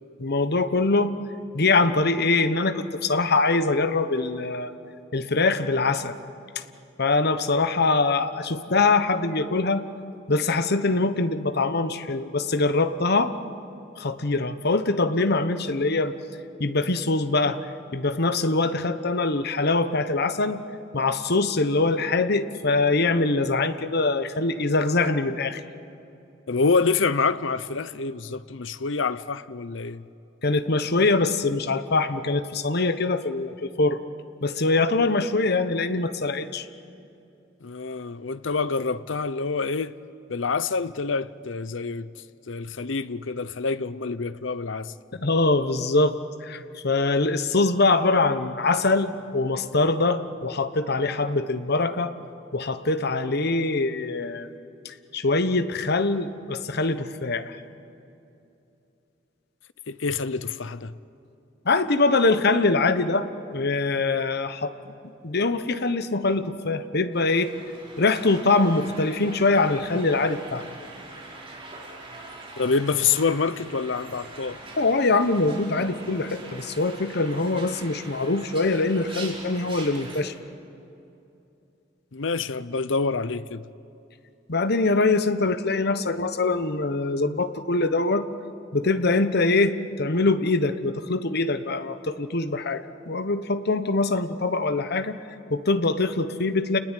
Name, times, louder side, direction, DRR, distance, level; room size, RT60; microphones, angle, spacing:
voice 1, 0.2-1.1 1.5-4.7 5.1-6.2 7.0-9.8 10.3-13.3 14.0-16.1 16.6-17.6 17.9-20.6 20.9-25.6 30.4-34.0 34.4-36.7 45.2-52.1 52.5-54.5 54.8-57.5 61.6-64.7 65.2-67.6 68.0-70.6 74.8-80.3 84.5-88.2 88.7-95.2 95.5-96.8, left 3 dB, 60° left, 1.2 m, -23 dB
voice 2, 26.5-30.0 37.6-39.9 40.3-42.1 42.5-44.9 59.9-60.9 72.6-74.6 82.1-83.7, left 4 dB, 75° left, 0.8 m, -26 dB
sound 1, 67.1-80.2, right 2 dB, 30° right, 4.7 m, -42 dB
29.5 x 20.0 x 9.3 m
head